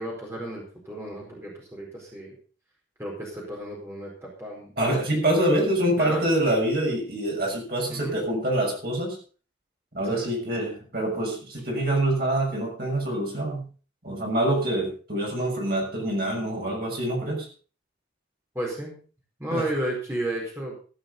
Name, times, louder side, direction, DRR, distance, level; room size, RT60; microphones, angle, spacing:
voice 1, 0.0-2.3 3.0-4.7 6.0-6.3 7.9-8.2 10.1-10.3 18.5-19.0 19.4-20.8, right 1 dB, 15° right, -3 dB, 4.6 m, -33 dB
voice 2, 4.8-9.2 9.9-13.7 14.0-17.5 19.5-19.7, right 1 dB, 50° right, -1 dB, 6.6 m, -25 dB
15.0 x 10.5 x 5.6 m, 0.39 s
head